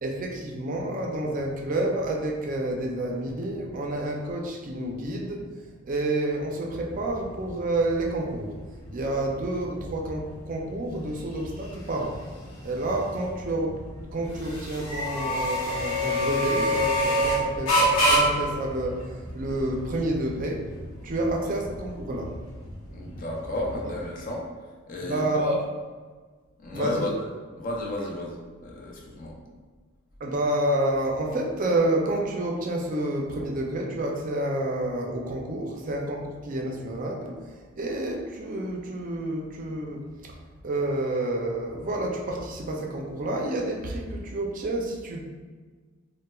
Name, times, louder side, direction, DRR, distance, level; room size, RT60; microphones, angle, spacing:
voice 1, 0.0-5.4 5.8-8.5 8.9-12.2 12.6-13.8 14.1-20.7 21.0-22.4 23.8-23.9 25.0-25.6 26.7-27.2 29.5-29.6 30.2-40.4 40.6-45.2, right 1 dB, 40° right, 0 dB, 0.4 m, -29 dB
sound 1, 6.9-24.1, equal, 80° left, 0.9 m, -29 dB
voice 2, 22.9-24.5 24.9-25.6 26.6-27.1 27.6-28.4 28.6-29.3, left 1 dB, 40° left, -1 dB, 0.5 m, -32 dB
4.1 x 2.1 x 2.2 m, 1.5 s
head